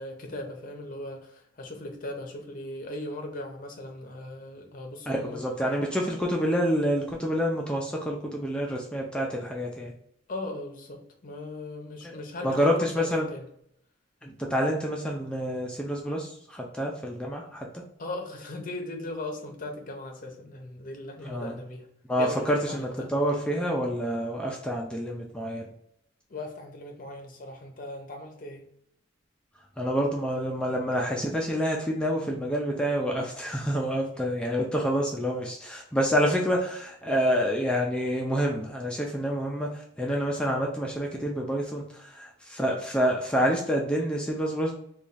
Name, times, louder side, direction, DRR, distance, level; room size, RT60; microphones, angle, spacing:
voice 1, 0.0-5.4 10.3-13.4 18.0-21.9 22.2-23.1 26.3-28.6, left 2 dB, 45° left, 3 dB, 0.7 m, -38 dB
voice 2, 5.1-9.9 12.0-12.2 12.4-13.3 14.2-17.8 21.2-21.5 22.1-25.7 29.8-44.7, equal, 5° left, -1 dB, 0.4 m, -28 dB
3.1 x 2.3 x 3.9 m, 0.71 s
head